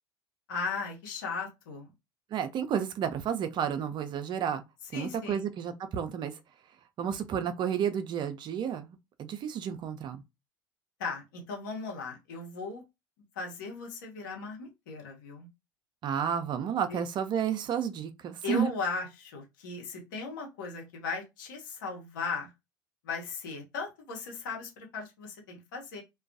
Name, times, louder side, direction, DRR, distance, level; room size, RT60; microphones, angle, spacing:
voice 1, 0.5-1.9 4.9-5.4 11.0-12.8 13.3-15.5 16.9-17.0 18.4-22.5 23.0-26.0, left 4 dB, 80° left, 1.0 m, -37 dB
voice 2, 2.3-4.6 4.9-6.3 7.0-10.2 16.0-18.7, right 8 dB, 45° right, 0.5 m, -31 dB
2.3 x 2.2 x 2.6 m
hypercardioid pair, 70°, 11 cm